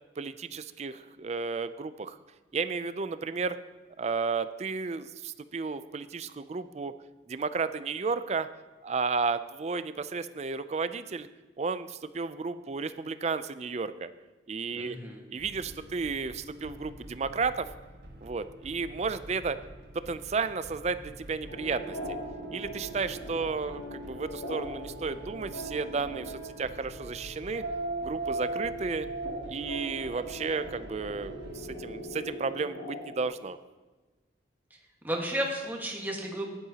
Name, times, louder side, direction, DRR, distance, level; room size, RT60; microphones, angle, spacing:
voice 1, 0.2-2.2 2.5-3.6 4.0-6.9 7.3-8.5 8.8-11.3 11.6-14.1 14.5-15.0 15.3-17.7 18.2-19.6 19.9-22.0 22.5-27.6 28.0-29.1 29.5-33.6, right 4 dB, 35° right, 13 dB, 0.4 m, -33 dB
voice 2, 14.8-15.2 35.0-36.5, equal, 10° right, -1 dB, 1.6 m, -33 dB
sound 1, 15.4-32.0, equal, 65° right, 1.3 m, -48 dB
sound 2, 21.5-33.2, right 1 dB, 85° left, 2.3 m, -39 dB
15.5 x 11.0 x 2.9 m, 1.3 s
head